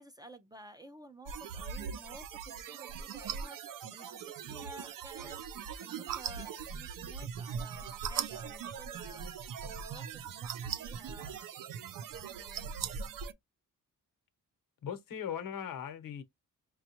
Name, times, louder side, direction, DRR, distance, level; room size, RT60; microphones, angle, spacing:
voice 1, 0.0-12.8, right 1 dB, 10° right, 0.5 m, -53 dB
sound 1, 1.3-13.3, right 7 dB, 70° right, 0.6 m, -40 dB
voice 2, 14.8-16.2, left 8 dB, 75° left, 1.0 m, -39 dB
5.9 x 2.3 x 2.8 m
wide cardioid pair, 135°, 34 cm